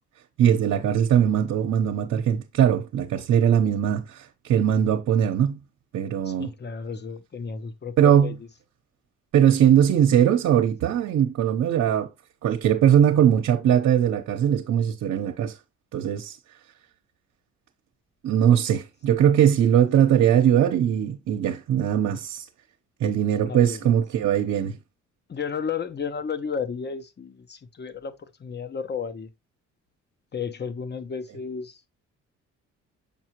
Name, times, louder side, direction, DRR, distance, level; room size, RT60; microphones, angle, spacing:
voice 1, 0.4-5.6 5.9-6.5 8.0-8.3 9.3-12.1 12.4-15.5 15.9-16.4 18.2-22.4 23.0-24.8, right 9 dB, 70° right, 1.0 m, -20 dB
voice 2, 6.2-8.4 23.4-24.0 25.3-29.3 30.3-31.8, left 6 dB, 35° left, 1.0 m, -33 dB
7.2 x 4.9 x 3.0 m
cardioid pair, 90°, 30 cm